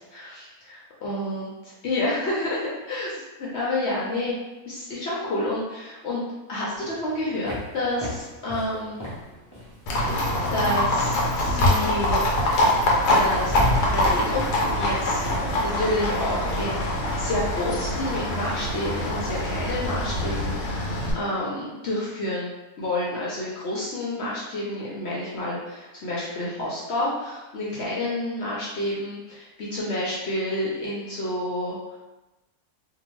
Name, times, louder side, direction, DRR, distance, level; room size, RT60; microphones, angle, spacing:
voice 1, 0.0-1.5 1.8-4.3 4.7-6.2 6.5-9.0 9.9-10.0 10.5-12.2 13.1-13.6 13.9-15.3 15.6-22.5 22.8-31.8, left 1 dB, 60° left, -6 dB, 0.7 m, -29 dB
sound 1, 6.8-11.3 12.6-12.7 13.1-18.8, equal, 30° left, 0.3 m, -34 dB
Livestock farm animals working animals, 9.9-21.1, left 1 dB, 90° left, 1.2 m, -24 dB
2.7 x 2.2 x 3.0 m, 1.1 s
omnidirectional pair, 1.6 m